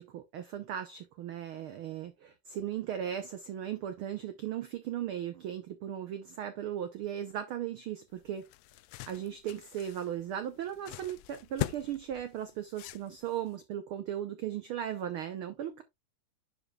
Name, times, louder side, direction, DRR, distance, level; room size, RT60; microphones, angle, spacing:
voice 1, 0.0-8.5 9.1-15.8, right 10 dB, 75° right, 1.2 m, -37 dB
sound 1, 8.1-13.5, left 18 dB, 85° left, 1.9 m, -42 dB
11.5 x 5.1 x 2.3 m
omnidirectional pair, 3.3 m